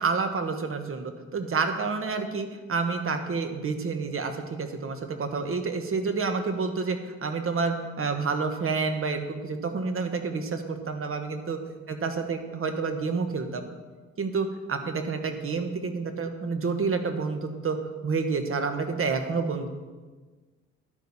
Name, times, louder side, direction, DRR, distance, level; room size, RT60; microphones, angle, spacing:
voice 1, 0.0-11.6 11.9-13.6 14.2-17.8 18.0-19.7, right 4 dB, 45° right, 7 dB, 1.4 m, -29 dB
11.5 x 9.6 x 4.3 m, 1.3 s
cardioid pair, 90°, 30 cm